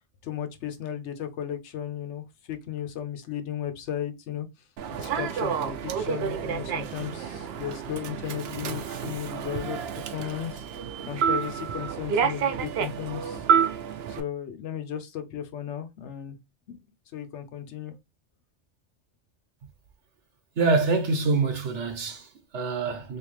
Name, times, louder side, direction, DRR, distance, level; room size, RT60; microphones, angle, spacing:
voice 1, 0.2-4.5 4.9-10.6 11.1-13.4 14.1-16.4 16.7-16.8 17.1-18.0, left 10 dB, 80° left, 1.0 m, -35 dB
Human voice / Subway metro underground, 4.8-14.2, right 7 dB, 70° right, 0.8 m, -29 dB
voice 2, 20.6-23.2, right 3 dB, 85° right, 1.3 m, -25 dB
3.4 x 2.7 x 3.1 m
omnidirectional pair, 1.2 m